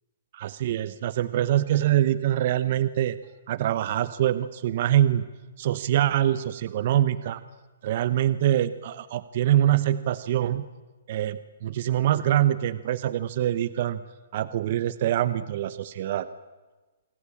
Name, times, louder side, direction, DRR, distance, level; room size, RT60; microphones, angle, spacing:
voice 1, 0.3-3.2 3.5-5.2 5.6-7.4 7.8-10.6 11.1-14.0 14.3-16.3, right 12 dB, 50° right, 15 dB, 1.0 m, -24 dB
28.0 x 21.5 x 8.7 m, 1.3 s
hypercardioid pair, 150°, 0 cm